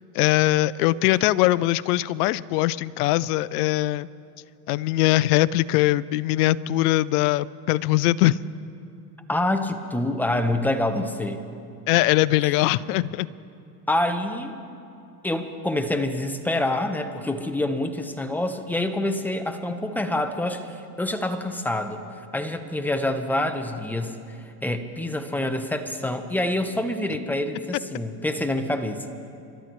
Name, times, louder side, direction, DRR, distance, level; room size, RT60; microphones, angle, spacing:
voice 1, 0.1-4.1 4.7-8.4 11.9-13.3, left 16 dB, 65° left, 19 dB, 0.6 m, -21 dB
voice 2, 9.3-11.4 13.9-14.6 15.2-22.0 22.3-24.4 24.6-29.1, left 1 dB, 5° left, 7 dB, 1.0 m, -26 dB
29.5 x 13.0 x 3.1 m, 2.7 s
hypercardioid pair, 105°, 49 cm